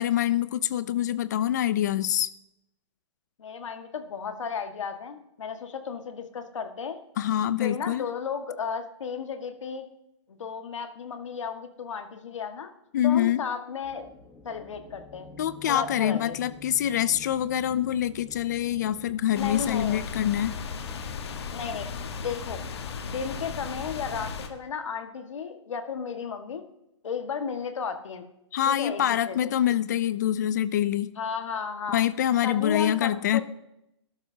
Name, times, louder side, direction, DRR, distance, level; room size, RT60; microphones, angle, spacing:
voice 1, 0.0-2.3 7.2-8.1 12.9-13.4 15.4-20.6 28.5-31.1 31.9-33.4, left 11 dB, 35° left, 16 dB, 0.4 m, -25 dB
voice 2, 3.4-7.0 7.6-9.8 10.3-12.7 13.0-14.0 14.4-15.3 15.7-16.4 19.3-20.1 21.5-21.9 22.2-22.6 23.0-26.6 27.0-28.2 28.6-29.4 31.1-32.0 32.4-33.4, left 6 dB, 85° left, 6 dB, 1.7 m, -34 dB
sound 1, 13.8-24.4, left 2 dB, 5° left, 1.1 m, -50 dB
sound 2, 19.3-24.5, left 5 dB, 60° left, 1.4 m, -36 dB
19.0 x 12.0 x 2.8 m, 0.84 s
hypercardioid pair, 170°, 15 cm